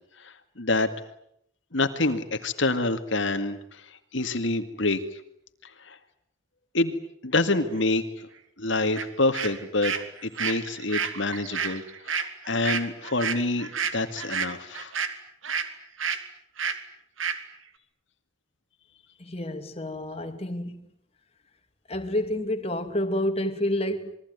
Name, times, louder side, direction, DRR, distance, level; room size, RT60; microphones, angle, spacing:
voice 1, 0.2-0.9 1.7-5.2 5.6-6.0 6.7-7.0 7.2-8.3 8.6-9.9 10.2-14.9, left 2 dB, 65° left, 2.1 m, -27 dB
sound 1, 8.9-9.1 9.3-15.7 16.0-16.2 16.6-16.8 17.2-17.4, right 6 dB, 75° right, 3.0 m, -30 dB
voice 2, 19.2-20.9 21.9-24.2, left 1 dB, 30° left, 2.5 m, -29 dB
27.5 x 22.0 x 9.5 m
head